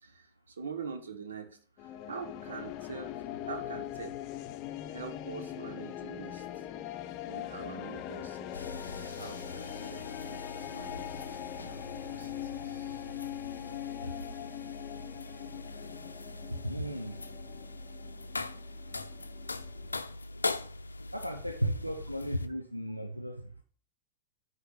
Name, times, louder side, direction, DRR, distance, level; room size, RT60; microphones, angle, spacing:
voice 1, 0.0-4.2 4.9-6.5 7.3-13.1, right 5 dB, 70° right, 8 dB, 1.4 m, -45 dB
sound 1, 1.8-20.0, left 12 dB, 40° left, 0.7 m, -42 dB
sound 2, 8.5-22.5, left 2 dB, 80° left, 0.6 m, -42 dB
voice 2, 16.5-17.2 21.1-23.6, equal, 90° right, 4 dB, 0.9 m, -35 dB
9.2 x 4.4 x 6.6 m, 0.44 s
figure-of-eight pair, 90°, 0 cm